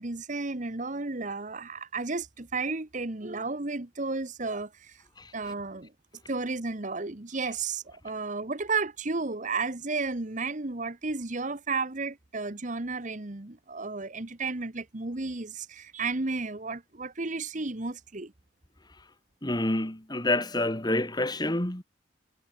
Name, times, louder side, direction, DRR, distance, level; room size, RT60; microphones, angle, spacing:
voice 1, 0.0-5.0 5.3-5.9 6.3-18.3, right 3 dB, 40° right, 1.3 m, -33 dB
voice 2, 19.4-21.8, left 1 dB, 20° left, 2.1 m, -28 dB
head